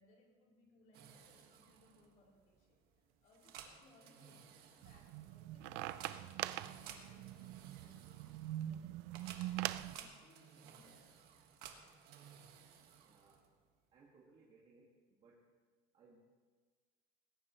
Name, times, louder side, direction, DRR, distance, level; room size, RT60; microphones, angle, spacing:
voice 1, 0.0-2.8 3.2-11.1, left 2 dB, 50° left, -3 dB, 3.9 m, -68 dB
sound 1, 0.9-13.7, right 8 dB, 70° right, 1.7 m, -57 dB
sound 2, 4.8-9.9, right 14 dB, 85° right, 0.5 m, -43 dB
voice 2, 13.0-13.4 13.9-15.5 15.9-16.2, right 3 dB, 35° right, -4 dB, 2.1 m, -66 dB
19.5 x 17.5 x 3.2 m, 1.4 s
cardioid pair, 165°, 17 cm